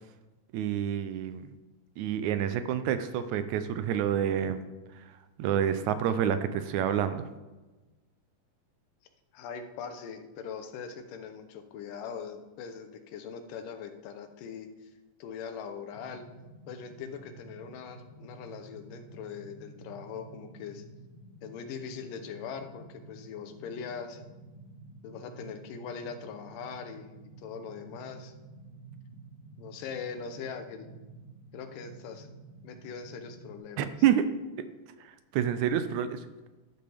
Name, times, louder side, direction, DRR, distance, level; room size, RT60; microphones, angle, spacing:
voice 1, 0.5-1.5 2.0-4.6 4.9-7.3 33.8-34.3 35.0-36.3, right 9 dB, 75° right, 11 dB, 1.8 m, -28 dB
voice 2, 9.3-14.9 15.2-16.3 16.7-20.8 21.4-24.2 25.0-28.3 29.6-30.9 31.5-32.3 32.6-33.8, left 6 dB, 85° left, 7 dB, 2.6 m, -41 dB
sound 1, 15.9-33.6, right 3 dB, 35° left, 3.3 m, -51 dB
12.0 x 12.0 x 3.5 m, 1.2 s
omnidirectional pair, 3.8 m